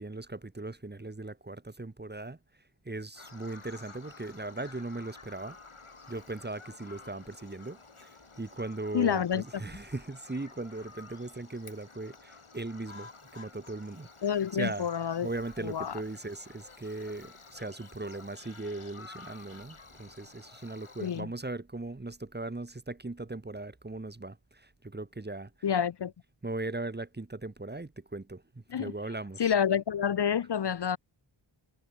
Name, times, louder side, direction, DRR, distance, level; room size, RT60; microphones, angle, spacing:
voice 1, 0.0-2.4 2.8-5.6 6.1-25.8 26.4-29.5, right 2 dB, 20° right, 1.1 m, -39 dB
Bird vocalization bird call bird song, 3.1-21.2, left 4 dB, 85° left, 7.5 m, -52 dB
voice 2, 8.9-9.4 14.2-15.3 15.6-16.0 21.0-21.3 25.6-26.1 28.7-28.9 29.4-31.0, left 8 dB, 55° left, 0.6 m, -28 dB
wide cardioid pair, 55°, 49 cm